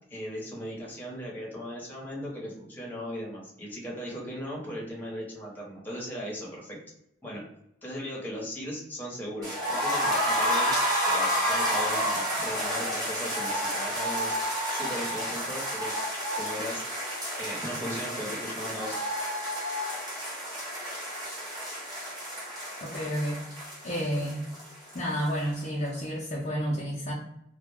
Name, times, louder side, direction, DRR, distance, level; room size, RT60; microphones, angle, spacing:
voice 1, 0.1-6.8 7.2-7.4 7.8-10.7 11.0-14.3 14.7-15.9 16.4-19.0, equal, 10° left, -4 dB, 0.9 m, -37 dB
sound 1, 9.4-25.3 25.5-25.6 25.9-26.0, equal, 20° right, 0.9 m, -30 dB
voice 2, 22.8-23.4 23.8-24.4 24.9-27.1, equal, 35° left, -5 dB, 0.5 m, -30 dB
2.3 x 2.1 x 3.3 m, 0.80 s
head